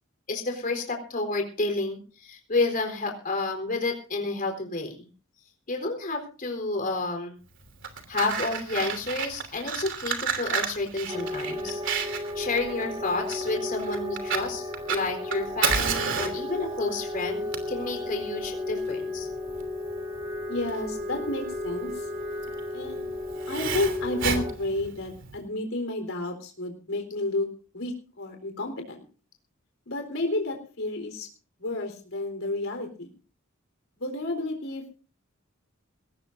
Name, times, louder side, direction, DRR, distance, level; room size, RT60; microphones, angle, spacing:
voice 1, 0.3-5.1 5.7-7.4 8.1-11.8 12.1-19.3, left 3 dB, 45° left, 3 dB, 4.1 m, -30 dB
Fire, 7.6-25.4, right 6 dB, 65° right, 3.0 m, -32 dB
sound 1, 11.1-24.5, left 2 dB, 25° right, 3.1 m, -34 dB
voice 2, 20.5-22.1 22.7-23.1 23.5-29.0 29.9-31.3 31.6-33.1 34.0-34.9, left 2 dB, 75° left, 4 dB, 4.0 m, -31 dB
21.0 x 18.0 x 2.6 m, 0.37 s
head